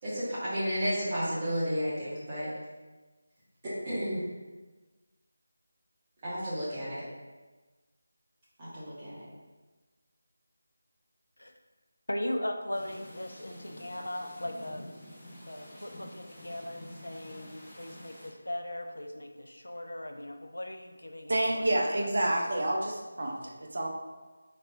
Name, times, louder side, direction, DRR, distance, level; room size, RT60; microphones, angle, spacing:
voice 1, 0.0-2.5 3.6-4.3 6.2-7.0 8.6-9.3, equal, 25° right, -10 dB, 1.3 m, -32 dB
voice 2, 12.1-14.9 15.4-22.1, left 1 dB, 75° left, 5 dB, 0.5 m, -38 dB
sound 1, 12.7-18.3, left 1 dB, 15° left, 0.8 m, -49 dB
voice 3, 21.3-23.9, right 1 dB, 50° right, 1 dB, 0.6 m, -29 dB
4.2 x 3.3 x 2.6 m, 1.2 s
figure-of-eight pair, 160°, 0 cm